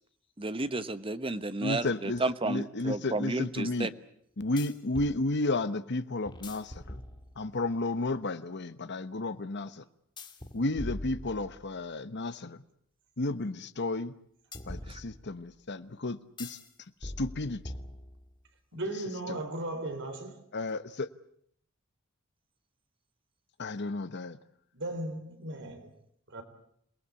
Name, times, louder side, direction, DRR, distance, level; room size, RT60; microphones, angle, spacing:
voice 1, 0.4-3.9 14.9-15.0, right 2 dB, 25° right, 12 dB, 1.1 m, -32 dB
voice 2, 1.6-3.9 4.4-7.0 7.4-9.8 10.5-12.6 13.2-14.1 14.7-16.6 17.0-17.6 19.3-19.4 20.5-21.1 23.6-24.4, left 2 dB, 55° left, 12 dB, 1.1 m, -32 dB
sound 1, 2.1-2.2 4.6-5.2 6.3-7.6 10.2-11.9 14.5-15.5 16.4-16.7 17.0-18.4, left 1 dB, 20° left, 2.2 m, -42 dB
voice 3, 18.7-20.4 24.7-25.9 26.3-26.4, right 1 dB, 60° right, 7 dB, 4.1 m, -36 dB
28.0 x 19.0 x 8.4 m, 0.70 s
head